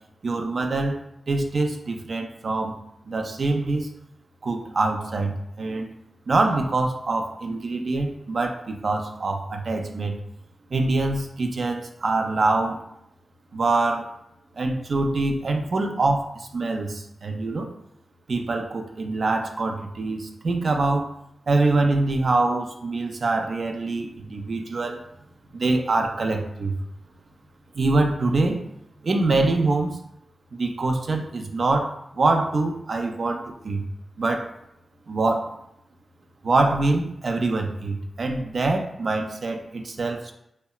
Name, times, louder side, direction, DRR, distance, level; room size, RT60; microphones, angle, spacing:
voice 1, 0.2-1.0 1.3-2.7 3.1-3.9 4.4-5.9 6.3-10.2 10.7-12.8 13.5-14.1 14.6-17.7 18.3-21.1 21.5-25.0 25.5-26.7 27.7-28.7 29.0-30.0 30.5-33.8 34.2-34.5 35.1-35.5 36.4-40.3, right 2 dB, 65° right, 4 dB, 0.3 m, -24 dB
2.8 x 2.1 x 2.2 m, 0.79 s
cardioid pair, 45°, 0 cm